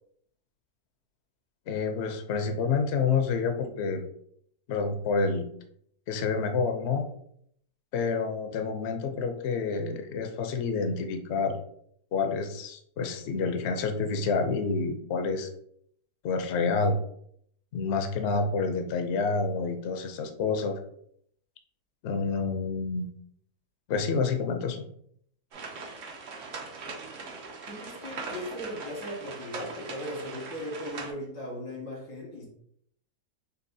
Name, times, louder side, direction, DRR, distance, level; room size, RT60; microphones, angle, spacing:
voice 1, 1.7-4.0 4.7-5.5 6.1-7.1 7.9-11.6 12.1-15.5 16.2-17.0 17.7-20.8 22.0-23.1 23.9-24.9, left 4 dB, 60° left, 5 dB, 0.7 m, -28 dB
sound 1, 25.5-31.1, right 4 dB, 60° right, 1.0 m, -40 dB
voice 2, 27.7-32.5, equal, 90° left, -3 dB, 2.2 m, -38 dB
6.6 x 2.4 x 2.6 m, 0.67 s
omnidirectional pair, 1.7 m